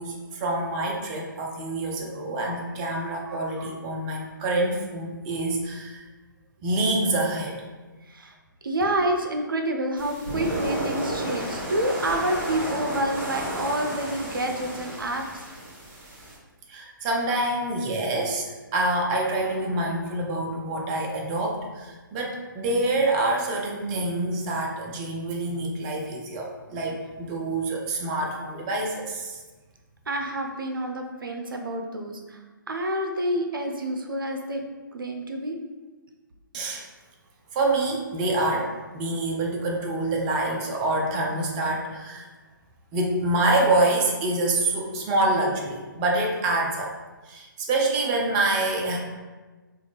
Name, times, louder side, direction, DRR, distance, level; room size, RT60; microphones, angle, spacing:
voice 1, 0.0-6.0 6.6-7.6 16.7-29.4 36.5-36.8 37.5-42.3 42.9-46.9 47.2-49.0, right 2 dB, 20° right, 0 dB, 0.4 m, -26 dB
voice 2, 8.6-15.5 28.2-28.3 30.1-32.4 32.7-34.6 34.9-35.6, right 1 dB, 80° right, 3 dB, 0.5 m, -28 dB
sound 1, 10.0-16.4, right 1 dB, 40° right, 1.1 m, -32 dB
3.4 x 2.4 x 3.1 m, 1.3 s
figure-of-eight pair, 135°, 11 cm